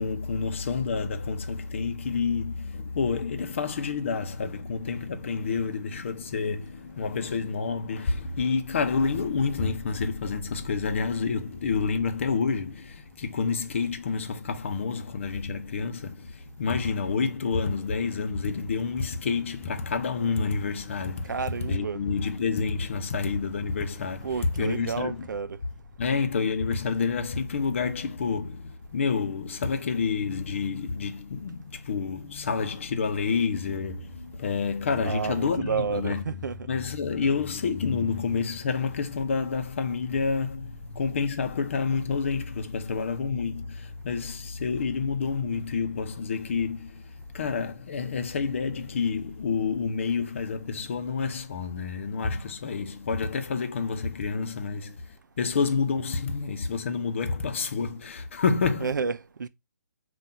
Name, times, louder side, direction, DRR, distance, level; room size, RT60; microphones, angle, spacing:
voice 1, 0.0-21.4 21.7-25.3 26.0-36.4 36.7-58.9, left 5 dB, 40° left, 0.7 m, -29 dB
sound 1, 17.5-25.4, right 3 dB, ahead, 0.4 m, -53 dB
voice 2, 21.2-22.0 24.2-25.6 35.0-36.7 58.8-59.5, right 6 dB, 90° right, 0.5 m, -31 dB
5.5 x 2.5 x 3.7 m
hypercardioid pair, 170°, 10 cm